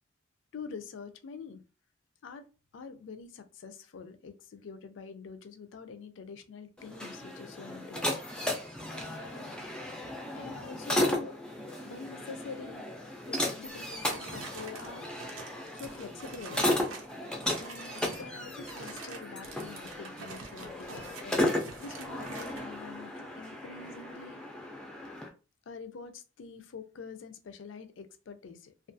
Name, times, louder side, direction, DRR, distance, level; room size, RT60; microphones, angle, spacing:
voice 1, 0.5-1.6 2.2-2.5 2.7-8.2 8.9-11.4 11.9-12.8 13.3-15.1 15.7-16.8 17.6-24.4 25.7-28.9, left 5 dB, 75° left, 0.4 m, -46 dB
sound 1, 6.8-25.3, left 1 dB, 5° left, 0.3 m, -35 dB
sound 2, 13.6-17.1 17.4-18.3 18.6-22.7, right 4 dB, 90° right, 0.6 m, -46 dB
2.4 x 2.2 x 2.5 m
head